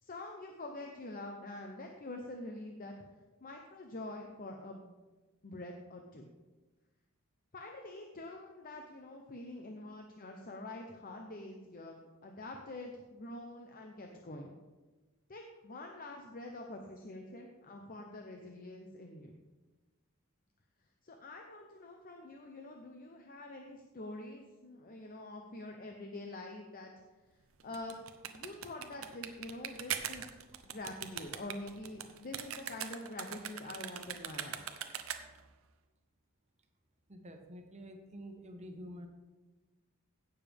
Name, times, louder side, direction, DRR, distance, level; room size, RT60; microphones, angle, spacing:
voice 1, 0.0-2.9 3.4-5.0 5.4-6.3 7.5-14.5 15.3-19.4 21.0-26.9 27.6-27.9 28.3-30.2 30.6-34.6, left 2 dB, 40° left, 2 dB, 0.8 m, -46 dB
sound 1, 27.6-35.5, right 9 dB, 70° right, 0.7 m, -41 dB
voice 2, 37.1-39.1, equal, 30° right, 4 dB, 1.2 m, -48 dB
16.5 x 7.0 x 3.5 m, 1.2 s
head